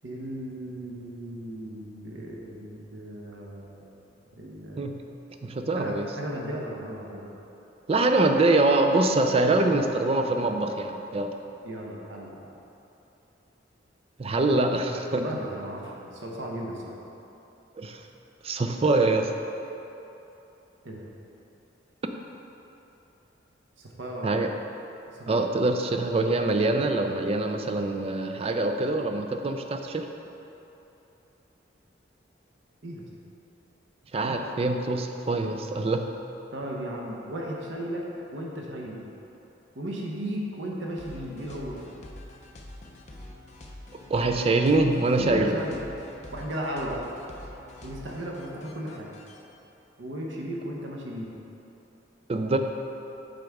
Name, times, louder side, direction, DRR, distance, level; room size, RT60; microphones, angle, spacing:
voice 1, 0.0-3.9 4.4-4.9 5.7-7.3 11.6-12.5 15.1-17.0 20.8-21.0 23.8-24.4 25.2-25.4 32.8-33.1 34.2-34.3 36.5-38.0 38.3-39.0 39.8-41.8 45.1-45.8 46.3-47.0 47.8-49.1 50.0-51.3, right 1 dB, 85° right, -2 dB, 0.9 m, -35 dB
voice 2, 5.4-6.1 7.9-11.3 14.2-15.2 17.8-18.0 18.4-19.3 24.2-24.5 25.3-30.1 34.1-36.1 44.1-45.5 52.3-52.6, right 2 dB, 30° right, 5 dB, 0.4 m, -24 dB
sound 1, 41.0-49.4, left 1 dB, 40° left, 0.6 m, -46 dB
7.8 x 5.1 x 3.5 m, 3.0 s
head